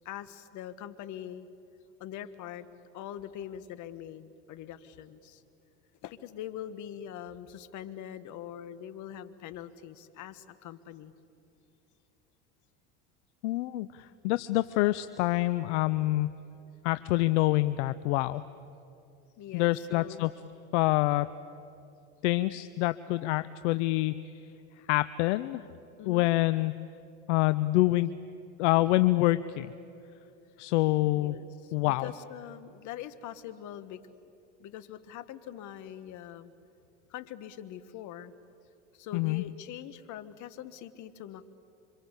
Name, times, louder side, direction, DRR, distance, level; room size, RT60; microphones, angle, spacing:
voice 1, 0.0-1.5 2.0-2.7 2.9-5.4 6.0-11.1 19.4-20.3 26.0-26.3 31.0-34.0 34.6-36.5 37.1-38.3 38.9-41.4, left 10 dB, 55° left, 13 dB, 1.6 m, -43 dB
voice 2, 13.4-16.3 16.8-18.4 19.5-20.3 20.7-21.3 22.2-24.2 24.9-25.6 26.0-26.7 27.3-28.1 28.6-29.7 30.6-31.3 31.7-32.1 39.1-39.4, left 18 dB, 75° left, 14 dB, 0.8 m, -26 dB
27.0 x 26.0 x 8.3 m, 2.7 s
hypercardioid pair, 90°, 36 cm